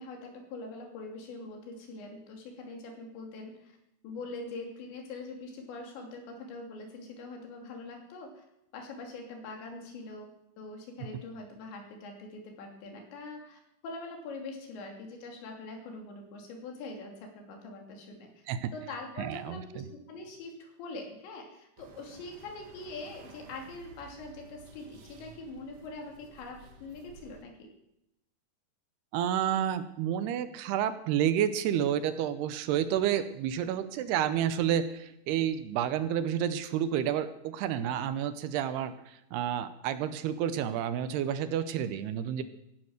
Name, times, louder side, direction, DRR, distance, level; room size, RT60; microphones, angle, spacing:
voice 1, 0.0-3.8 4.0-8.5 8.7-10.3 10.6-18.3 18.7-19.8 20.1-27.7, left 3 dB, 85° left, 2 dB, 5.1 m, -43 dB
voice 2, 19.2-19.6 29.1-42.4, right 10 dB, 80° right, 12 dB, 2.6 m, -30 dB
sound 1, 21.8-27.4, right 3 dB, 65° right, 1.5 m, -54 dB
16.5 x 11.5 x 6.5 m, 0.84 s
omnidirectional pair, 5.0 m